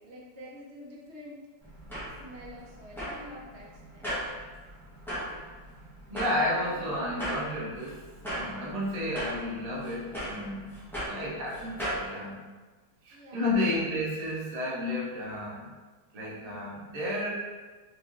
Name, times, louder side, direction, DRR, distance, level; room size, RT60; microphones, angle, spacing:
voice 1, 0.0-1.5 2.0-4.2 6.5-6.8 13.1-13.9, equal, 55° right, -4 dB, 0.8 m, -47 dB
sound 1, 1.6-12.1, equal, ahead, 0.8 m, -38 dB
voice 2, 6.1-8.0 8.3-10.7 11.1-12.4 13.0-15.7 16.1-17.3, left 1 dB, 75° right, -5 dB, 0.3 m, -32 dB
4.2 x 3.0 x 2.5 m, 1.3 s
omnidirectional pair, 1.7 m